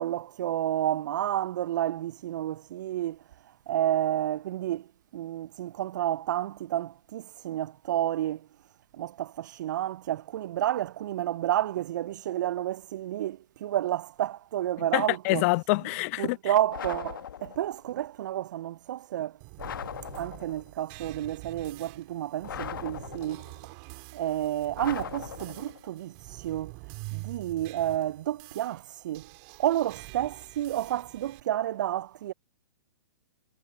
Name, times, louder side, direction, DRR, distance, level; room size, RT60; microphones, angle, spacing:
voice 1, 0.0-3.2 3.7-4.8 5.1-8.4 8.9-15.4 16.2-19.4 20.2-23.4 24.1-26.7 27.1-29.3 29.6-32.3, right 12 dB, 55° right, 0.5 m, -30 dB
voice 2, 14.9-16.4, left 25 dB, 40° left, 1.0 m, -26 dB
sound 1, 16.7-17.8 19.6-20.7 22.4-23.6 24.8-25.9, left 9 dB, 65° left, 1.8 m, -39 dB
sound 2, 19.4-31.4, right 37 dB, 40° right, 5.3 m, -46 dB
hypercardioid pair, 120°, 12 cm